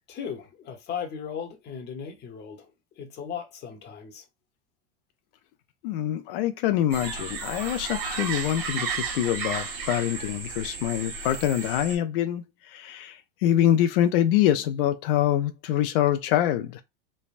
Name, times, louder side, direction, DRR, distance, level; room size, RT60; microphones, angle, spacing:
voice 1, 0.1-2.7 3.0-4.2, left 7 dB, 35° left, 0.9 m, -37 dB
voice 2, 5.8-16.8, left 11 dB, 70° left, 0.5 m, -25 dB
sound 1, 6.9-12.0, right 5 dB, 75° right, 1.3 m, -33 dB
3.3 x 2.1 x 2.5 m
supercardioid pair, 120°, 29 cm